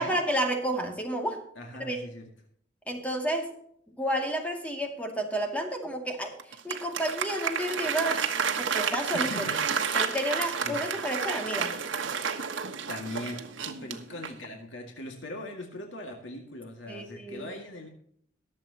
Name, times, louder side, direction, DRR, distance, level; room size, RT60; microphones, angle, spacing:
voice 1, 0.0-1.4 1.8-2.0 2.9-3.6 4.0-6.4 6.6-8.3 8.6-9.5 9.9-11.7 16.9-17.5, right 1 dB, 10° left, 2 dB, 2.3 m, -31 dB
voice 2, 1.6-2.2 9.1-9.6 10.6-10.8 12.9-17.9, left 1 dB, 75° left, 2 dB, 2.0 m, -40 dB
Applause, 6.4-14.5, right 6 dB, 85° right, 1.3 m, -31 dB
22.5 x 7.6 x 2.9 m, 0.65 s
head